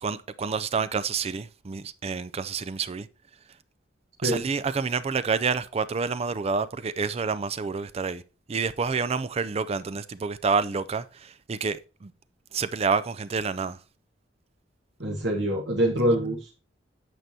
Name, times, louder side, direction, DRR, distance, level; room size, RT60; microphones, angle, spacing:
voice 1, 0.0-3.1 4.2-8.2 8.5-12.1 12.5-13.8, right 5 dB, 35° right, 0.4 m, -28 dB
voice 2, 15.0-16.5, equal, 70° right, 1.3 m, -25 dB
9.3 x 6.7 x 2.7 m
head